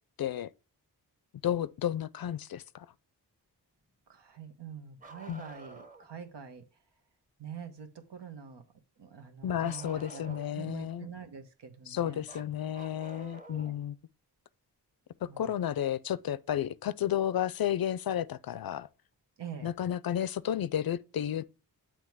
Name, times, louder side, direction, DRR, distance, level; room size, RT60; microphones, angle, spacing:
voice 1, 0.2-0.5 1.4-2.9 5.3-5.4 9.4-11.1 11.9-14.0 15.2-18.9 19.6-21.4, left 10 dB, 60° left, 0.5 m, -32 dB
voice 2, 4.1-6.6 7.4-8.6 9.0-12.2 13.4-13.7 15.3-15.6 19.4-19.7, right 7 dB, 85° right, 1.1 m, -45 dB
Bark, 5.0-6.1 9.6-10.7 12.3-13.8 15.4-15.5 17.5-17.6 18.7-18.8, right 2 dB, 20° right, 1.2 m, -50 dB
7.6 x 3.0 x 4.6 m
cardioid pair, 65°, 41 cm